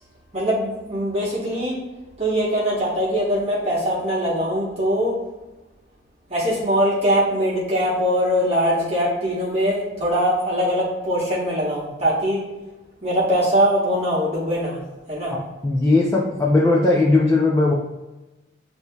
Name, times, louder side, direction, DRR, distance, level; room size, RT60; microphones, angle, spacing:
voice 1, 0.3-1.8 2.2-5.2 6.3-12.4 13.0-14.8 15.1-15.4, equal, 35° right, -6 dB, 1.1 m, -22 dB
voice 2, 15.3-17.7, left 2 dB, 15° left, -4 dB, 0.5 m, -18 dB
8.0 x 2.7 x 2.2 m, 1.1 s
head